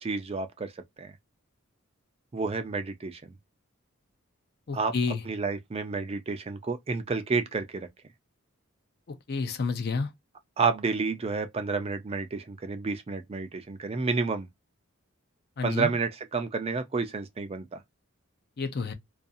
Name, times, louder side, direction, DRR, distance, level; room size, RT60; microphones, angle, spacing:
voice 1, 0.0-0.7 1.0-1.1 2.3-3.2 4.7-4.9 5.3-7.9 10.6-14.5 15.6-17.8, right 4 dB, 30° right, 0.4 m, -30 dB
voice 2, 4.7-5.2 9.1-10.1 15.6-15.9 18.6-18.9, left 4 dB, 50° left, 0.5 m, -30 dB
2.4 x 2.3 x 2.6 m
head